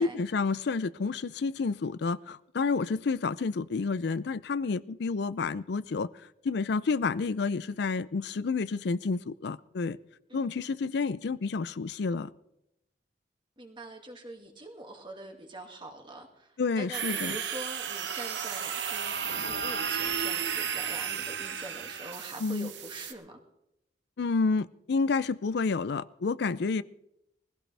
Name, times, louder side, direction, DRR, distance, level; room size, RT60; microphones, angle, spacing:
voice 1, 0.0-10.0 10.3-12.3 16.6-17.4 22.4-22.7 24.2-26.8, left 4 dB, 65° left, 16 dB, 0.4 m, -30 dB
voice 2, 10.3-10.8 13.6-23.4, right 1 dB, 25° right, 3 dB, 2.1 m, -44 dB
sound 1, 16.9-23.1, right 7 dB, 70° right, 1.1 m, -33 dB
21.0 x 15.5 x 3.4 m, 0.84 s
head